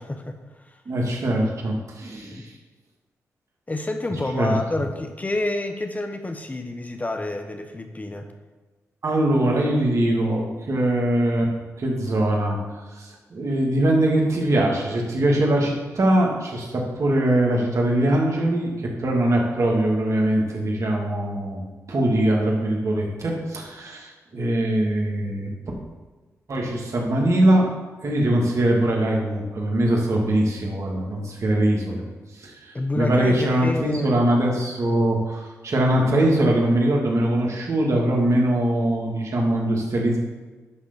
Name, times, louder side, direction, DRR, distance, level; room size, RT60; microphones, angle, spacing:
voice 1, 0.0-0.8 2.3-2.5 3.7-8.3 32.7-34.1, left 2 dB, 25° left, 5 dB, 1.1 m, -28 dB
voice 2, 0.9-2.5 4.3-4.6 9.0-11.5 11.8-12.6 12.9-21.6 21.9-25.5 26.5-27.6 28.0-32.0 32.4-40.2, right 1 dB, 60° right, -1 dB, 2.5 m, -22 dB
11.0 x 3.9 x 7.0 m, 1.3 s
cardioid pair, 55°, 6 cm